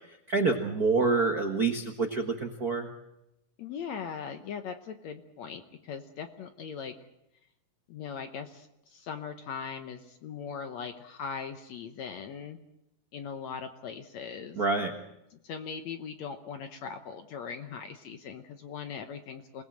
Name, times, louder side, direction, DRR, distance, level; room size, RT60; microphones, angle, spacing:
voice 1, 0.3-2.9 14.5-14.9, right 4 dB, 55° right, 4 dB, 1.0 m, -27 dB
voice 2, 3.6-7.0 7.9-12.6 13.1-14.6 15.3-19.6, left 6 dB, 65° left, 7 dB, 1.9 m, -40 dB
27.5 x 19.0 x 7.7 m, 0.86 s
omnidirectional pair, 4.1 m